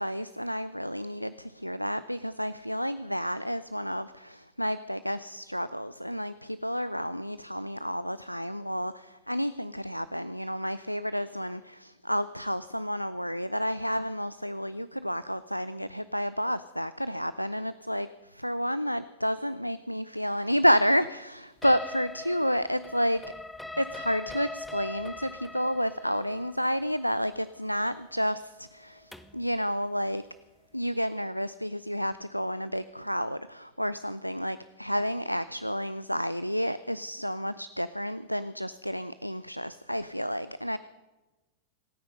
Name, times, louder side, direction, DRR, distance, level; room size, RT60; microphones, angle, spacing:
voice 1, 0.0-23.3 23.8-30.2 30.7-40.8, equal, 90° left, 16 dB, 0.4 m, -30 dB
sound 1, 21.6-29.4, left 2 dB, 5° left, 0.9 m, -42 dB
26.0 x 9.5 x 5.3 m, 1.1 s
figure-of-eight pair, 90°, 0 cm